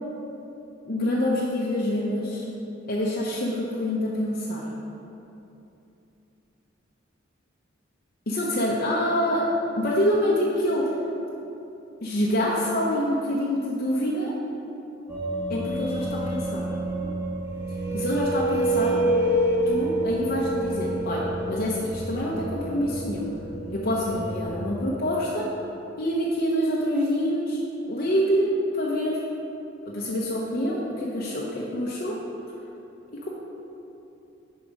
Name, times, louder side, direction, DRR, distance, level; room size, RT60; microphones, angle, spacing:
voice 1, 0.8-2.4 2.9-4.7 8.3-9.5 9.8-10.9 12.0-14.3 15.5-16.6 17.9-19.0 19.7-23.3 23.7-25.4 26.0-27.6 27.9-29.2 29.9-32.2 33.2-33.3, equal, 50° left, -4 dB, 0.8 m, -26 dB
sound 1, 15.1-24.4, right 1 dB, 10° right, 1.3 m, -28 dB
6.9 x 4.9 x 5.3 m, 2.9 s
head